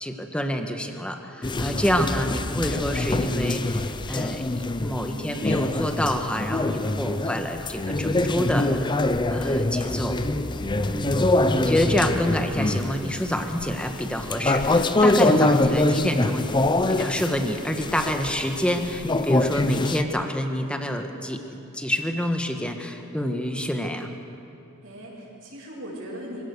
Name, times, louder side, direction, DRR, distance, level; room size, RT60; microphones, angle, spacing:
voice 1, 0.0-4.4 4.8-8.8 9.3-10.2 10.9-16.5 16.9-24.1, equal, 5° left, 5 dB, 1.3 m, -27 dB
sound 1, 1.4-20.0, left 2 dB, 20° left, 0.6 m, -24 dB
voice 2, 10.6-11.3 24.8-26.4, equal, 70° right, -3 dB, 6.7 m, -40 dB
25.0 x 17.0 x 6.7 m, 2.7 s
head